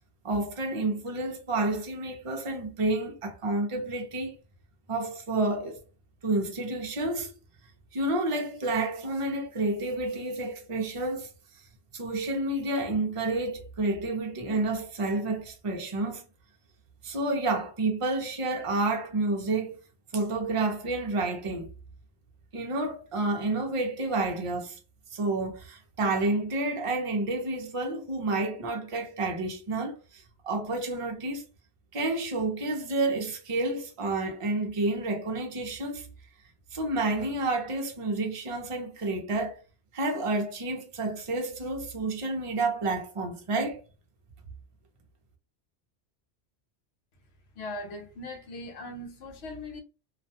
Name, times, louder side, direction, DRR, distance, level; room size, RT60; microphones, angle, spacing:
voice 1, 0.2-4.4 4.9-5.8 6.2-7.3 7.9-11.3 11.9-16.3 17.0-19.8 20.1-21.7 22.5-24.8 25.1-31.4 31.9-36.1 36.7-39.6 39.9-43.8, right 2 dB, 40° right, 0.5 m, -30 dB
voice 2, 47.6-49.8, left 1 dB, 75° left, 0.9 m, -39 dB
2.4 x 2.1 x 2.6 m
omnidirectional pair, 1.1 m